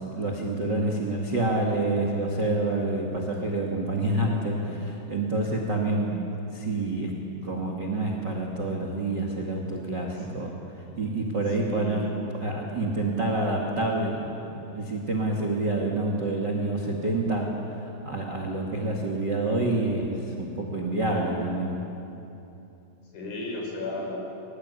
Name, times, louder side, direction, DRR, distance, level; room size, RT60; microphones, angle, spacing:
voice 1, 0.0-6.1 6.5-7.1 7.4-10.5 11.0-12.1 12.4-17.5 17.8-21.8, right 2 dB, 55° right, 0 dB, 1.2 m, -27 dB
voice 2, 3.9-4.7 5.9-6.3 10.2-10.3 11.6-12.1 23.1-24.2, left 1 dB, 50° left, 0 dB, 6.0 m, -36 dB
24.5 x 19.0 x 9.8 m, 2.9 s
omnidirectional pair, 5.8 m